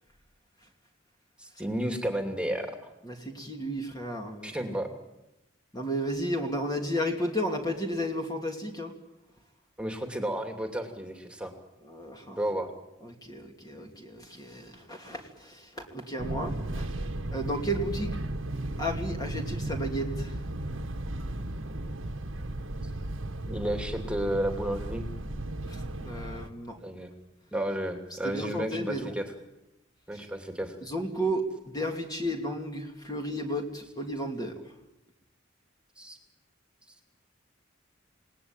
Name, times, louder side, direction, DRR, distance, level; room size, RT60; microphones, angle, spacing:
voice 1, 1.4-2.9 4.4-4.9 9.8-11.5 12.4-12.7 23.4-25.1 26.8-27.1 27.5-29.2 30.1-30.8 36.0-36.2, right 1 dB, 5° right, 4 dB, 2.8 m, -32 dB
voice 2, 3.0-4.6 5.7-8.9 11.8-12.4 13.0-16.9 17.3-18.2 18.8-20.4 25.6-26.8 28.2-29.1 30.1-30.2 30.8-34.6, equal, 20° left, 2 dB, 2.7 m, -33 dB
Fixed-wing aircraft airplane, 16.2-26.5, right 1 dB, 85° right, 1.6 m, -35 dB
29.0 x 19.0 x 9.1 m, 0.96 s
head